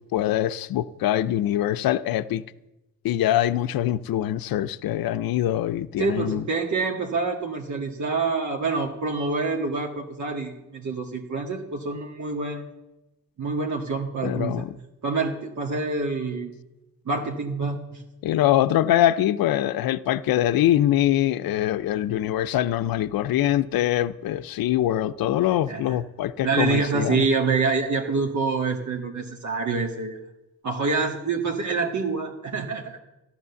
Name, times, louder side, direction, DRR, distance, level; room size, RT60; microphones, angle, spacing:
voice 1, 0.1-2.4 3.0-6.4 14.2-14.7 18.2-27.3, left 12 dB, 90° left, 0.6 m, -23 dB
voice 2, 6.0-12.7 13.4-14.7 15.0-16.5 17.1-18.0 25.7-26.0 26.4-30.2 30.6-33.0, right 4 dB, 55° right, 1.7 m, -26 dB
13.5 x 11.5 x 7.0 m
cardioid pair, 90°, 34 cm